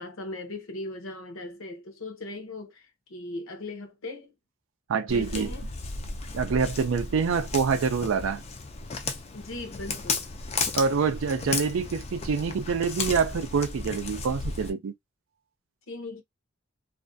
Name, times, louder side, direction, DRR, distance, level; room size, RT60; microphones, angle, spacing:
voice 1, 0.0-4.3 5.1-5.7 9.3-10.3 15.9-16.2, left 2 dB, 70° left, 0.7 m, -38 dB
voice 2, 4.9-5.5 6.3-8.4 10.8-14.9, right 5 dB, 70° right, 0.4 m, -26 dB
Walk footsteps, 5.1-14.7, left 4 dB, 30° left, 0.3 m, -34 dB
2.4 x 2.2 x 2.5 m
head